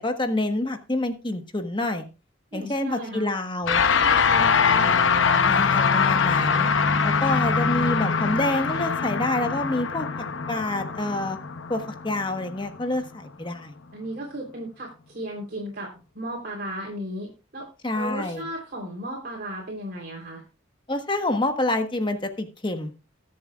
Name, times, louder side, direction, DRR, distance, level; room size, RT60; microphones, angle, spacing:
voice 1, 0.0-2.0 2.5-3.8 5.4-6.7 7.0-10.1 10.5-11.4 11.7-13.7 17.8-18.4 20.9-22.9, left 2 dB, 25° left, 6 dB, 1.2 m, -27 dB
voice 2, 2.5-3.3 3.9-5.0 13.9-17.7 17.9-20.4, right 1 dB, 50° right, -4 dB, 3.4 m, -35 dB
sound 1, 3.6-13.1, left 5 dB, 75° left, 0.8 m, -23 dB
21.5 x 7.6 x 2.4 m, 0.32 s
head